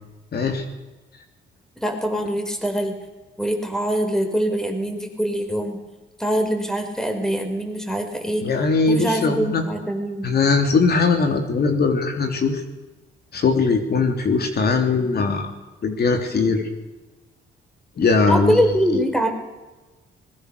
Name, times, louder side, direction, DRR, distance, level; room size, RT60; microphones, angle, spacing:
voice 1, 0.3-0.7 8.4-9.6 10.2-12.6 13.3-15.5 15.8-16.7 18.0-18.6, left 4 dB, 55° left, 5 dB, 3.5 m, -20 dB
voice 2, 1.8-2.9 3.4-5.8 6.2-8.5 8.9-10.3 18.3-19.3, equal, 5° left, 5 dB, 5.1 m, -23 dB
25.0 x 21.5 x 6.8 m, 1.2 s
cardioid pair, 90°, 20 cm